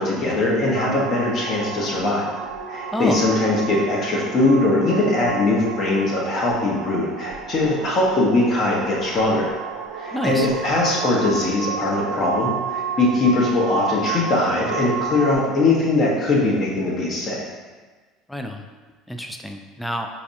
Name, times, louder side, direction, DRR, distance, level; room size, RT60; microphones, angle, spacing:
voice 1, 0.0-2.3 2.7-9.5 9.9-17.4, left 2 dB, 40° left, -3 dB, 1.0 m, -21 dB
sound 1, 0.7-15.4, right 6 dB, 85° right, 0.4 m, -32 dB
voice 2, 10.1-10.5 18.3-18.6 19.1-20.1, equal, 5° left, 4 dB, 0.4 m, -27 dB
4.6 x 2.3 x 2.7 m, 1.4 s
supercardioid pair, 95°, 0 cm